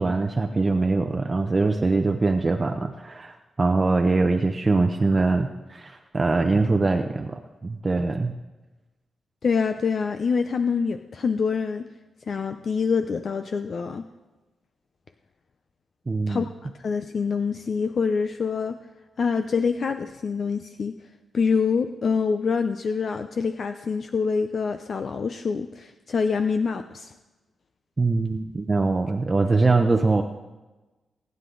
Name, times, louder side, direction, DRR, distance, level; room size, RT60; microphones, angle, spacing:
voice 1, 0.0-8.3 16.1-16.4 28.0-30.2, right 3 dB, 25° right, 4 dB, 0.7 m, -23 dB
voice 2, 9.4-11.9 12.3-14.0 16.3-18.8 19.2-21.0 21.3-27.1, left 5 dB, 50° left, 8 dB, 0.6 m, -26 dB
24.5 x 9.6 x 3.9 m, 1.2 s
wide cardioid pair, 125°, 0 cm